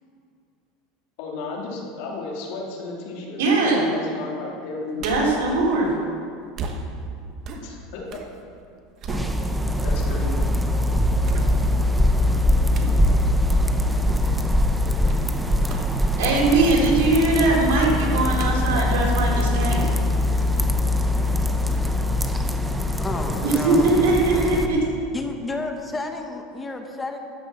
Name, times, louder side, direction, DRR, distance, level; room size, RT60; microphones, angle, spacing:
voice 1, 1.2-3.4 3.9-5.4 7.6-8.2 9.8-10.4 23.1-23.2, left 3 dB, 70° left, -1 dB, 2.4 m, -34 dB
voice 2, 3.4-3.9 5.0-5.9 16.2-19.8 23.4-24.8, right 2 dB, 85° right, -3 dB, 3.5 m, -20 dB
sound 1, 5.0-5.5 6.5-8.3 8.7-9.8 10.3-10.4 11.2-11.9 12.7-13.0 15.1-15.3 15.7-16.0 16.4-17.0 17.4-17.7 18.4-20.0 20.4-20.5, right 4 dB, 40° right, 1.1 m, -35 dB
sound 2, 9.1-24.7, left 1 dB, 5° right, 0.7 m, -22 dB
voice 3, 23.0-24.0 25.1-27.2, left 3 dB, 15° left, 4 dB, 1.0 m, -31 dB
12.5 x 6.1 x 7.2 m, 2.4 s
supercardioid pair, 135°, 0 cm